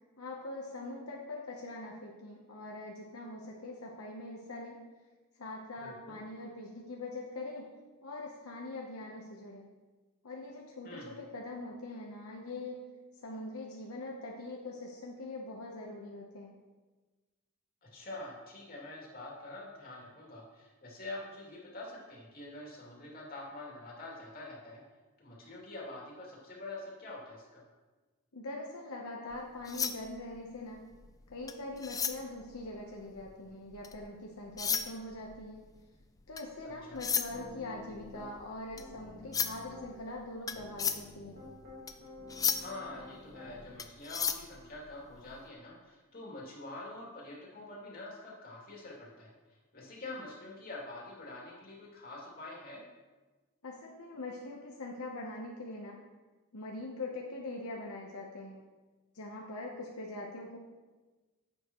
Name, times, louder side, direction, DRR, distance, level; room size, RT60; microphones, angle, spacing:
voice 1, 0.2-4.8 5.4-7.6 8.0-9.7 10.2-12.8 13.2-16.6 28.3-30.8 31.3-35.6 36.3-41.4 53.6-56.0 56.5-58.6 59.1-60.6, left 2 dB, 80° left, -1 dB, 0.9 m, -43 dB
voice 2, 5.8-6.2 10.8-11.1 17.8-24.8 25.2-27.6 36.6-37.0 42.5-49.3 49.7-52.8, left 2 dB, 45° left, -4 dB, 2.5 m, -46 dB
sound 1, 29.3-34.1 34.5-45.4, left 7 dB, 15° left, 0.3 m, -36 dB
Piano, 37.3-38.3 38.7-39.9 40.5-43.7, left 2 dB, 50° right, 2.0 m, -51 dB
11.0 x 7.8 x 3.0 m, 1.3 s
head